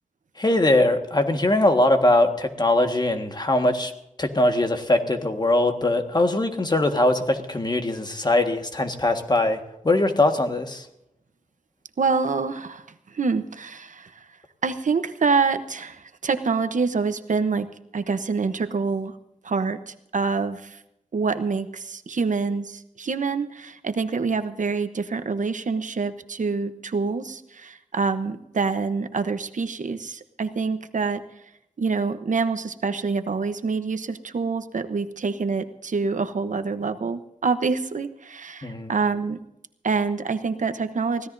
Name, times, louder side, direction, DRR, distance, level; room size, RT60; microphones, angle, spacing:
voice 1, 0.4-3.9 4.2-9.6 9.8-10.9 38.6-38.9, left 2 dB, 30° left, 5 dB, 1.6 m, -21 dB
voice 2, 12.0-14.3 14.6-19.2 19.4-20.8 21.1-31.2 31.8-39.4 39.8-41.3, right 4 dB, 70° right, 10 dB, 0.9 m, -26 dB
24.5 x 16.5 x 2.7 m, 0.82 s
wide cardioid pair, 110°, 13 cm